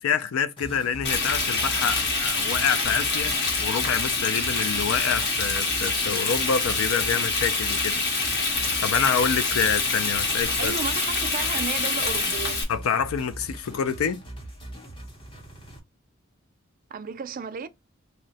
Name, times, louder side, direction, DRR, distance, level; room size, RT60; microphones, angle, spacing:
voice 1, 0.0-3.3 3.6-8.0 8.4-10.7 12.7-14.2, left 7 dB, 85° left, 0.4 m, -27 dB
sound 1, 0.6-15.8, right 1 dB, 25° left, 0.7 m, -41 dB
Frying (food), 1.0-12.6, left 3 dB, 55° left, 0.9 m, -26 dB
voice 2, 10.6-12.6 16.9-17.7, right 6 dB, 45° right, 0.3 m, -33 dB
2.7 x 2.1 x 3.9 m
head